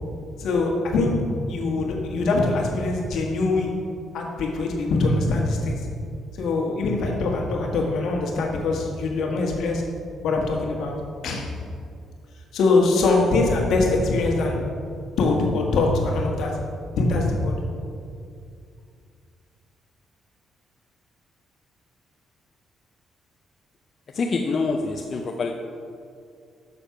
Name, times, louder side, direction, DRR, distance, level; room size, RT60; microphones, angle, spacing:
voice 1, 0.4-3.8 4.1-5.8 6.4-9.9 10.2-11.0 11.2-11.5 12.5-14.7 15.2-16.6 17.0-17.5, left 3 dB, 75° left, 0 dB, 1.5 m, -23 dB
voice 2, 24.1-25.5, left 4 dB, 50° left, 2 dB, 0.6 m, -25 dB
6.7 x 6.5 x 5.8 m, 2.3 s
cardioid pair, 90°, 0 cm